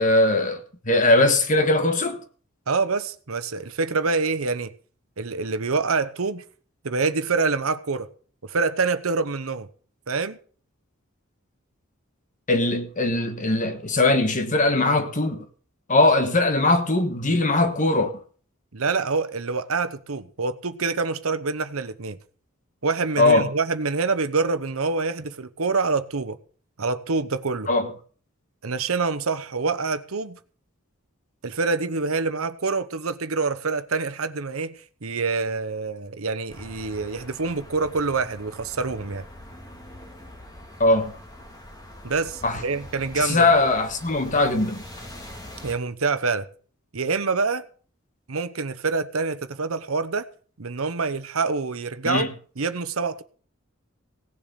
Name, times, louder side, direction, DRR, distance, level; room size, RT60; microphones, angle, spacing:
voice 1, 0.0-2.2 12.5-15.4 15.9-18.1 23.2-23.5 27.7-27.9 40.8-41.1 42.4-42.6 43.2-44.8 52.0-52.3, left 2 dB, 40° left, 1.4 m, -20 dB
voice 2, 2.7-4.7 5.2-6.4 6.8-8.1 8.4-9.7 10.1-10.4 18.7-22.2 22.8-26.4 26.8-27.7 28.6-30.4 31.4-39.2 42.0-43.5 45.6-46.5 46.9-47.6 48.3-50.3 50.6-52.3 52.6-53.2, right 4 dB, 85° right, 1.0 m, -26 dB
sound 1, 36.5-45.7, left 1 dB, 20° left, 2.7 m, -43 dB
17.0 x 7.3 x 6.9 m
head